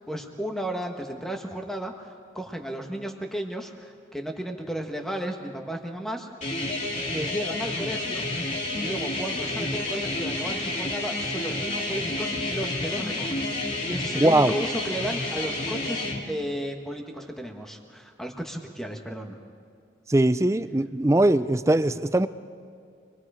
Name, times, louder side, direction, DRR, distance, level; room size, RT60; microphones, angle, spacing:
voice 1, 0.0-6.3 7.1-8.5 8.7-16.0 16.3-19.4, equal, ahead, 3 dB, 1.5 m, -34 dB
sound 1, 6.4-16.2, left 2 dB, 40° left, 2.5 m, -30 dB
voice 2, 14.2-14.5 20.1-22.3, right 1 dB, 15° right, 13 dB, 0.4 m, -21 dB
26.5 x 21.5 x 5.0 m, 2.4 s
head